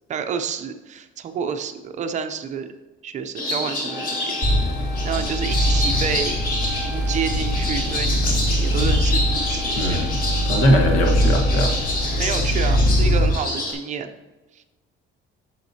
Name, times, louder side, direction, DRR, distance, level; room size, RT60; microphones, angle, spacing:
voice 1, 0.1-2.7 3.0-4.4 5.0-6.4 6.8-10.0 10.9-11.1 12.2-14.1 14.5-14.6, right 6 dB, 35° right, 7 dB, 0.5 m, -29 dB
sound 1, 3.4-13.7, left 1 dB, 45° left, 1.7 m, -28 dB
Wind instrument woodwind instrument, 3.8-12.1, left 2 dB, 15° left, 2.4 m, -39 dB
sound 2, 4.4-13.3, equal, 30° left, 1.8 m, -22 dB
voice 2, 9.8-10.2 10.5-11.7, equal, 80° left, 2 dB, 1.5 m, -20 dB
9.2 x 6.4 x 2.8 m, 1.2 s
cardioid pair, 165°, 20 cm